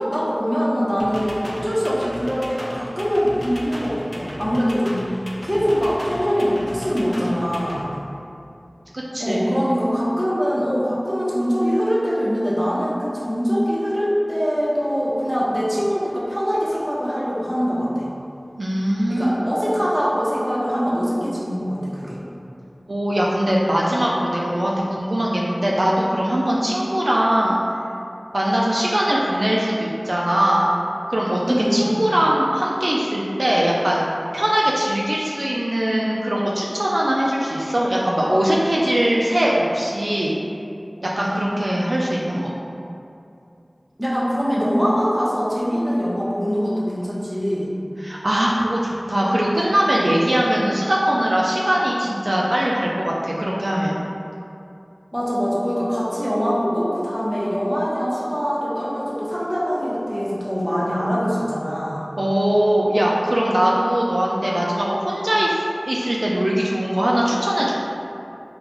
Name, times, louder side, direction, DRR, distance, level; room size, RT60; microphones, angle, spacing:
voice 1, 0.0-5.0 5.4-7.9 9.2-18.1 19.1-22.2 31.5-32.0 44.0-47.7 55.1-62.0, equal, 10° right, -7 dB, 0.8 m, -23 dB
sound 1, 1.0-7.8, equal, 30° left, 0.4 m, -35 dB
voice 2, 8.9-9.6 18.6-19.3 22.9-27.6 28.3-30.7 31.1-31.4 31.7-34.0 34.3-40.3 41.0-42.5 48.0-54.0 62.2-67.7, equal, 60° right, -4 dB, 0.3 m, -21 dB
3.7 x 2.2 x 2.9 m, 2.6 s
wide cardioid pair, 45°, 0 cm